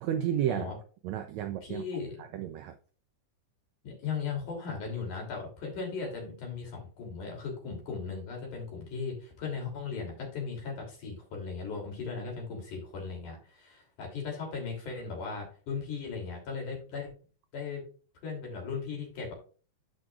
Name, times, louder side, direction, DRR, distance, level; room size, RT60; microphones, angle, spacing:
voice 1, 0.0-0.7 1.0-1.8 2.2-2.7, right 10 dB, 80° right, 7 dB, 1.6 m, -32 dB
voice 2, 1.6-2.2 3.8-17.1 17.5-17.8 18.2-19.3, left 5 dB, 70° left, 0 dB, 4.3 m, -37 dB
14.5 x 5.1 x 2.4 m, 0.39 s
omnidirectional pair, 3.7 m